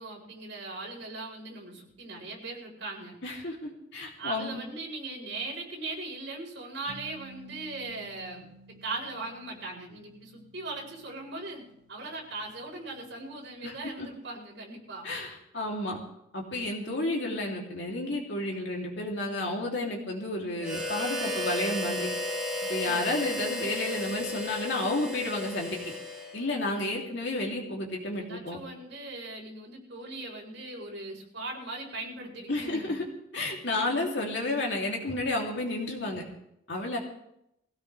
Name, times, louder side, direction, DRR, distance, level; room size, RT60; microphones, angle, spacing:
voice 1, 0.0-3.2 4.2-8.5 8.8-15.1 22.8-23.1 26.9-27.2 28.2-32.9, right 2 dB, 65° right, -1 dB, 4.5 m, -39 dB
voice 2, 3.2-4.6 13.6-14.1 15.0-16.0 16.3-22.1 22.7-25.8 26.3-28.6 32.5-33.0 33.3-36.2 36.7-37.0, left 2 dB, 60° left, -1 dB, 3.1 m, -31 dB
sound 1, 6.9-13.7, right 2 dB, 40° right, 6.6 m, -54 dB
Harmonica, 20.6-26.6, left 1 dB, 5° right, 3.0 m, -34 dB
21.0 x 16.5 x 3.4 m, 0.81 s
head